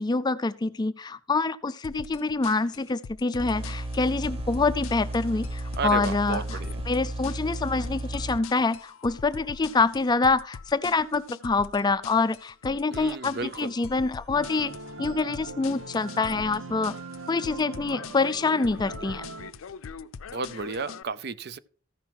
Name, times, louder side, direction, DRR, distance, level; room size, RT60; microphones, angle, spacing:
voice 1, 0.0-6.6 6.9-14.7 15.0-17.0 17.3-19.3, left 3 dB, 20° left, 0.4 m, -26 dB
sound 1, 1.8-21.0, left 6 dB, 85° left, 0.5 m, -43 dB
sound 2, 3.4-8.4, right 1 dB, 30° right, 0.8 m, -34 dB
voice 2, 5.8-6.8 12.9-13.7 20.3-21.6, right 4 dB, 55° right, 0.6 m, -33 dB
sound 3, 14.3-19.5, right 3 dB, 85° right, 0.9 m, -41 dB
14.5 x 5.6 x 4.6 m
head